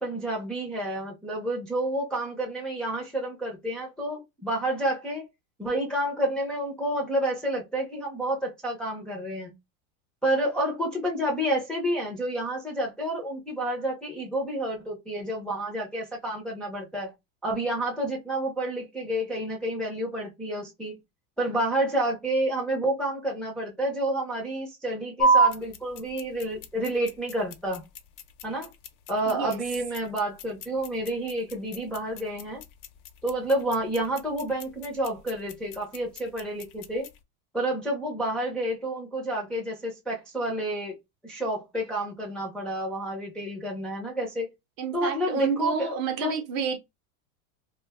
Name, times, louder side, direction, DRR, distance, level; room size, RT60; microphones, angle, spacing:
voice 1, 0.0-5.2 5.6-9.5 10.2-17.1 17.4-20.9 21.4-27.8 28.4-28.7 29.1-32.6 33.2-37.1 37.5-40.9 41.2-44.5 44.9-46.3, right 1 dB, ahead, 0.5 m, -29 dB
sound 1, 25.2-37.2, right 3 dB, 60° left, 0.7 m, -31 dB
voice 2, 29.3-29.6 44.8-46.8, right 6 dB, 45° right, 0.7 m, -29 dB
2.4 x 2.2 x 3.4 m
supercardioid pair, 145°, 43 cm